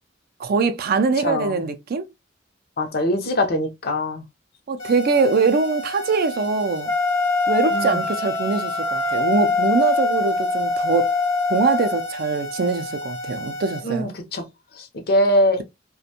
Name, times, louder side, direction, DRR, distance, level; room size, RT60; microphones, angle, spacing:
voice 1, 0.4-2.0 4.7-6.9 7.5-11.1 11.5-14.1, right 4 dB, 55° right, 0.4 m, -22 dB
voice 2, 1.2-1.7 2.8-4.2 7.7-8.0 13.8-14.4 14.8-15.6, left 1 dB, 55° left, 0.6 m, -22 dB
sound 1, 4.8-13.8, left 1 dB, 75° left, 0.9 m, -33 dB
Wind instrument woodwind instrument, 6.8-12.1, left 3 dB, 10° left, 0.4 m, -23 dB
2.5 x 2.1 x 2.7 m
head